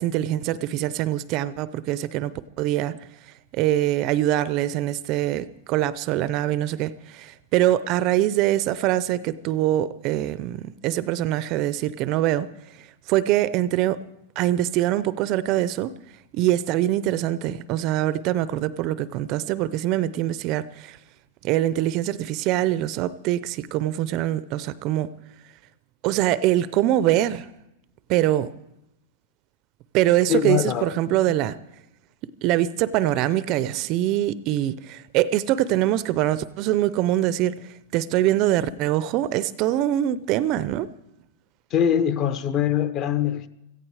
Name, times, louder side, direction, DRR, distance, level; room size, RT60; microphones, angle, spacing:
voice 1, 0.0-3.0 3.5-12.5 13.1-14.0 14.4-15.9 16.3-21.0 21.4-25.1 26.0-27.5 28.1-28.5 29.9-31.6 32.4-37.6 37.9-40.9, right 13 dB, 35° right, 0.5 m, -23 dB
voice 2, 30.3-30.9 41.7-43.5, left 9 dB, 30° left, 0.8 m, -23 dB
17.0 x 15.0 x 4.8 m
supercardioid pair, 165°, 0 cm